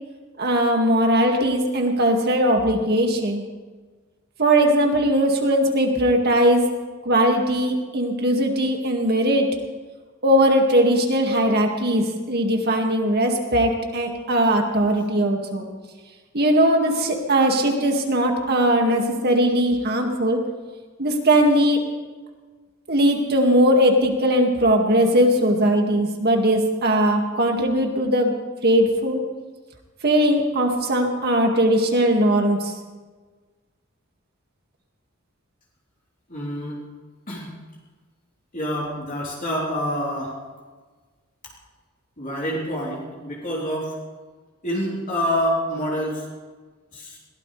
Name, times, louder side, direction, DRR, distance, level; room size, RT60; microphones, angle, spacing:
voice 1, 0.4-3.4 4.4-6.6 7.0-9.5 10.2-15.7 16.3-20.4 21.0-21.8 22.9-28.3 28.6-29.2 30.0-32.7, right 1 dB, 50° right, 2 dB, 2.2 m, -19 dB
voice 2, 36.3-36.8 37.3-37.5 38.5-40.4 42.2-44.0 44.6-46.2 46.9-47.2, equal, 40° left, -5 dB, 3.8 m, -27 dB
22.0 x 17.5 x 3.4 m, 1.4 s
head